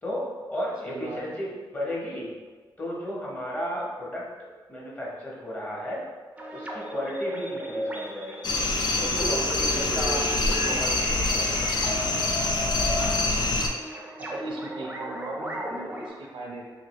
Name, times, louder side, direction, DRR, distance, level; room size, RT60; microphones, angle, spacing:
voice 1, 0.0-2.3 2.8-4.3 4.7-6.0 6.5-8.4 9.0-11.6, equal, 20° left, -5 dB, 0.9 m, -34 dB
voice 2, 0.9-1.2 9.7-10.2 10.6-10.8 13.4-13.6 14.2-16.7, right 2 dB, 85° right, -2 dB, 0.7 m, -39 dB
sound 1, 6.4-16.1, right 1 dB, 15° right, 0.4 m, -35 dB
sound 2, 8.4-13.7, left 2 dB, 55° left, 0.4 m, -25 dB
3.1 x 2.6 x 3.0 m, 1.4 s
wide cardioid pair, 115°, 9 cm